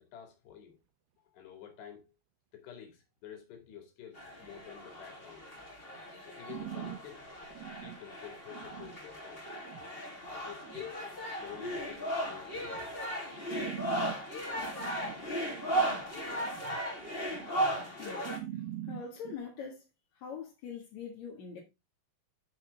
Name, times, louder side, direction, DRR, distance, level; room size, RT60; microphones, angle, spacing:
voice 1, 0.1-0.8 1.2-2.1 2.5-5.5 6.2-7.2 7.8-9.5 10.2-12.9, left 9 dB, 80° left, 4.6 m, -49 dB
sound 1, 4.1-18.4, right 1 dB, 15° left, 2.6 m, -36 dB
sound 2, 6.5-7.0 7.5-8.0 8.5-9.0 9.5-9.9 10.5-10.9 11.5-11.9 12.5-12.8 13.5-14.2 14.5-16.8 17.2-17.8 18.2-19.4, right 12 dB, 75° right, 2.4 m, -44 dB
voice 2, 18.0-18.6 18.9-19.8 20.1-21.6, left 6 dB, 50° left, 2.7 m, -43 dB
11.0 x 6.8 x 3.5 m
omnidirectional pair, 4.7 m